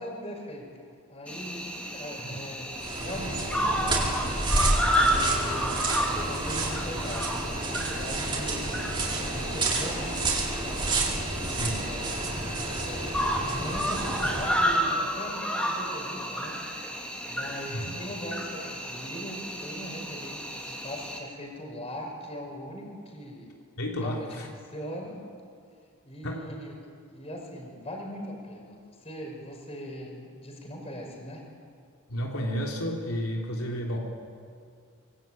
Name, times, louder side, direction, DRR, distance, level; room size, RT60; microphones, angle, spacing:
voice 1, 0.0-4.2 4.9-8.8 9.2-11.1 11.7-16.6 17.3-23.5 24.0-25.2 26.0-31.5, equal, 25° left, 1 dB, 5.3 m, -40 dB
Cricket, 1.3-21.2, equal, 5° left, 3.0 m, -31 dB
sound 1, 2.7-14.6, right 2 dB, 20° right, 4.4 m, -30 dB
voice 2, 11.5-11.9 17.7-18.0 23.8-24.5 26.2-26.6 32.1-34.0, equal, 80° left, -1 dB, 3.3 m, -32 dB
25.0 x 22.5 x 9.1 m, 2.3 s
head